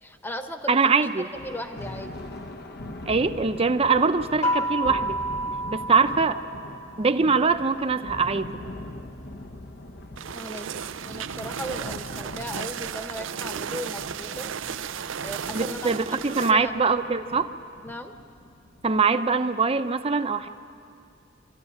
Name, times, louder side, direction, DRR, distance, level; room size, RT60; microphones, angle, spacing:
voice 1, 0.0-0.7 1.4-2.1 10.3-14.5 15.2-15.8 16.1-16.7 17.8-18.1, equal, 10° left, 6 dB, 1.2 m, -37 dB
voice 2, 0.7-1.3 3.1-5.2 5.7-6.4 7.0-8.6 15.5-17.5 18.8-20.5, right 4 dB, 30° right, 9 dB, 0.7 m, -23 dB
Thunder, 1.3-19.0, left 1 dB, 55° left, 1.1 m, -42 dB
sound 1, 4.4-7.1, equal, 35° left, 1.5 m, -29 dB
sound 2, 10.2-16.5, right 7 dB, 90° right, 0.5 m, -34 dB
26.0 x 14.0 x 9.6 m, 2.4 s
head